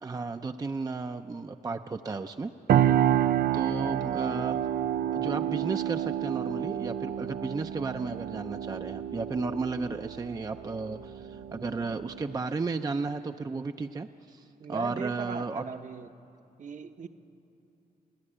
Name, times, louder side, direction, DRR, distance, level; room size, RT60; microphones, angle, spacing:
voice 1, 0.0-2.5 3.5-4.6 5.1-15.6, right 4 dB, 25° right, 7 dB, 0.4 m, -34 dB
sound 1, 2.7-12.4, right 10 dB, 85° right, 0.4 m, -29 dB
voice 2, 14.6-16.1 16.6-17.1, right 5 dB, 55° right, 7 dB, 0.9 m, -38 dB
29.5 x 11.0 x 9.8 m, 2.7 s
wide cardioid pair, 130°, 16 cm